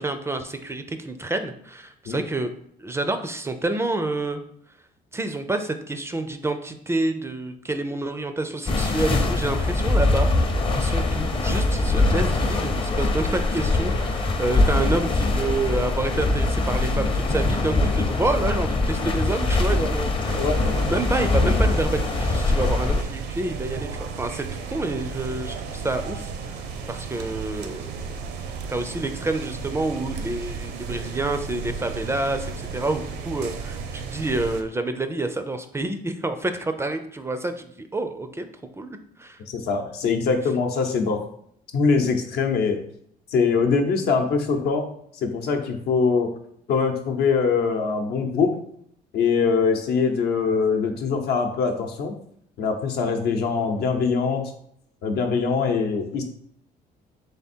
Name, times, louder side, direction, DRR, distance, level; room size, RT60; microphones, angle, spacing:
voice 1, 0.0-2.5 2.8-4.4 5.1-10.3 10.7-20.4 20.8-26.6 26.9-28.1 28.7-38.5 38.8-39.4, right 2 dB, 15° right, 8 dB, 0.4 m, -28 dB
sound 1, 8.7-23.0, left 2 dB, 30° left, 0.7 m, -22 dB
sound 2, 20.2-34.6, right 5 dB, 75° right, 0.6 m, -34 dB
voice 2, 39.5-41.2 41.7-42.8 43.3-44.8 45.2-46.3 46.7-48.6 49.1-52.1 52.6-54.5 55.0-56.2, left 5 dB, 75° left, 4 dB, 0.8 m, -23 dB
3.5 x 3.3 x 4.3 m, 0.69 s
cardioid pair, 110°, 17 cm